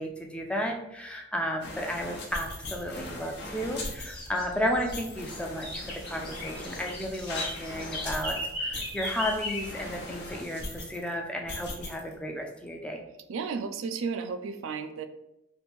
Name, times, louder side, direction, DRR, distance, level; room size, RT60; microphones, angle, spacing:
voice 1, 0.0-13.1, equal, 5° left, 1 dB, 0.4 m, -33 dB
sound 1, 1.6-11.1 11.5-12.1 12.5-12.7, left 2 dB, 55° left, 0.7 m, -40 dB
sound 2, 2.4-10.4, equal, 25° left, 1.2 m, -39 dB
voice 2, 13.3-15.1, right 5 dB, 80° right, 9 dB, 0.3 m, -33 dB
3.1 x 2.5 x 3.4 m, 0.87 s
head